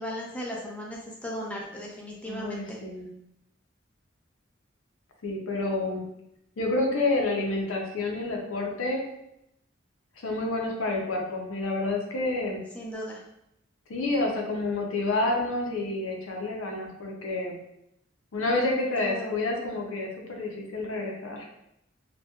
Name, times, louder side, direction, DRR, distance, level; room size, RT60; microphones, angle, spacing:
voice 1, 0.0-2.8 12.7-13.2 19.0-19.4, equal, 5° left, -2 dB, 0.4 m, -36 dB
voice 2, 2.3-3.1 5.2-6.0 6.6-9.1 10.2-12.6 13.9-17.6 18.3-21.4, left 2 dB, 90° left, 0 dB, 0.5 m, -29 dB
2.8 x 2.2 x 2.2 m, 0.80 s
head